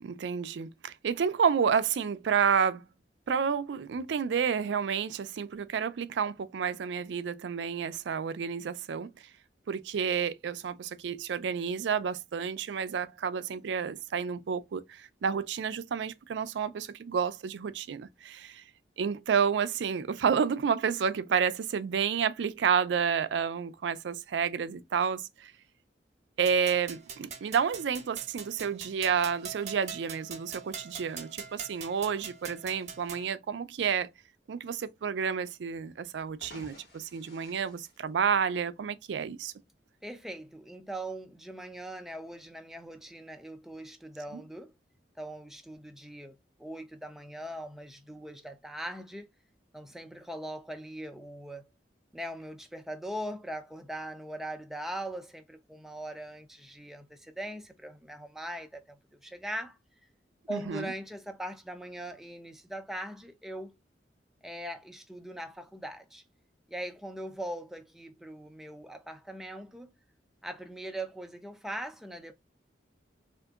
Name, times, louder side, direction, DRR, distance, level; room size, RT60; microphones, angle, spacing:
voice 1, 0.0-2.9 3.3-9.1 9.7-18.6 19.0-25.5 26.4-34.1 34.5-39.5 44.3-44.4 60.5-60.9, right 7 dB, 85° right, 0.4 m, -30 dB
sound 1, 26.5-33.3, right 6 dB, 40° right, 0.7 m, -43 dB
sound 2, 36.2-38.8, equal, 65° left, 1.3 m, -53 dB
voice 2, 40.0-44.7 45.2-49.3 49.7-51.6 52.1-59.8 60.5-63.8 64.4-66.2 66.7-69.9 70.4-72.3, right 1 dB, ahead, 0.4 m, -41 dB
3.6 x 2.5 x 2.3 m
head